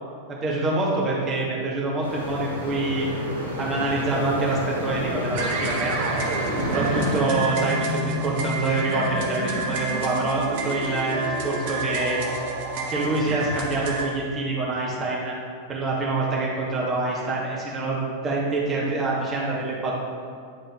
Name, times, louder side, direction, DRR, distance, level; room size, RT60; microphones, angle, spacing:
voice 1, 0.3-3.1 3.6-5.9 6.6-12.2 12.9-15.4 15.7-19.9, right 2 dB, 25° right, -4 dB, 1.5 m, -26 dB
sound 1, 2.0-7.2, equal, 85° left, 1.1 m, -30 dB
sound 2, 5.3-14.0, right 2 dB, 50° right, 0.8 m, -28 dB
9.2 x 3.6 x 3.0 m, 2.1 s
figure-of-eight pair, 90°, 0 cm